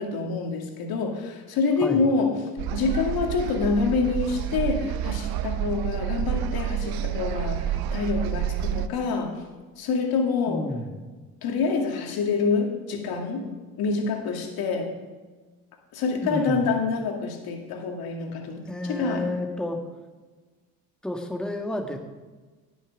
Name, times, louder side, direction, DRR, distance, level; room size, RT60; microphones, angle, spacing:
voice 1, 0.0-2.3 2.7-9.4 9.8-10.7 11.4-13.5 13.8-14.9 15.9-19.3, left 4 dB, 70° left, 2 dB, 2.4 m, -26 dB
sound 1, 2.6-8.9, right 10 dB, 70° right, 0.7 m, -29 dB
voice 2, 10.5-11.0 16.2-16.6 18.7-19.8 21.0-22.0, left 1 dB, ahead, 2 dB, 1.6 m, -30 dB
17.0 x 7.1 x 5.1 m, 1.3 s
supercardioid pair, 85°, 38 cm